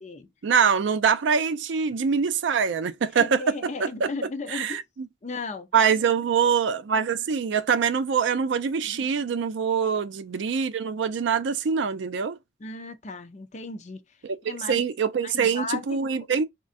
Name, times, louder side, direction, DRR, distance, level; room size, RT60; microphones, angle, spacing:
voice 1, 0.4-4.1 4.5-5.1 5.7-12.4 14.2-16.4, right 6 dB, 65° right, 0.4 m, -24 dB
voice 2, 3.2-4.8 5.2-5.7 8.8-9.1 12.6-14.0 14.4-14.9 15.2-16.0, left 3 dB, 35° left, 0.5 m, -36 dB
3.7 x 2.3 x 2.5 m
head